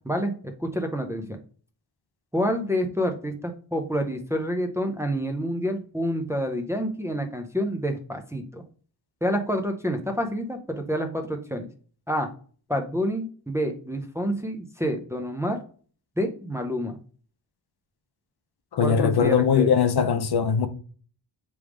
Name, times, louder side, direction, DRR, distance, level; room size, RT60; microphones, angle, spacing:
voice 1, 0.0-1.4 2.3-8.6 9.2-11.7 12.1-12.3 12.7-15.6 16.2-17.0 18.8-19.7, equal, 5° right, 0.5 m, -28 dB
voice 2, 18.7-20.7, left 7 dB, 65° left, 0.6 m, -21 dB
3.5 x 3.1 x 4.8 m
wide cardioid pair, 170°, 42 cm